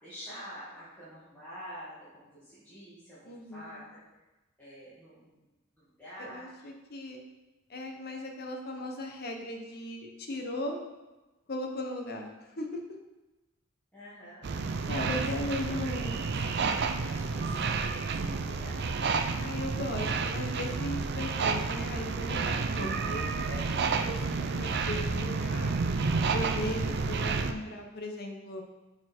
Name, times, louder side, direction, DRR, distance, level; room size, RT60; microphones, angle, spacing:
voice 1, 0.0-4.0 4.6-5.4 5.8-6.6 13.9-14.5 14.9-16.2 16.5-18.8, equal, 10° left, -13 dB, 1.9 m, -47 dB
voice 2, 3.2-3.8 6.2-7.2 7.7-10.8 11.5-12.7 14.9-16.1 19.4-25.8 26.3-28.6, left 1 dB, 45° left, 2 dB, 0.9 m, -37 dB
sound 1, 14.4-27.5, right 4 dB, 50° right, 0.4 m, -30 dB
6.5 x 4.4 x 4.5 m, 1.1 s
head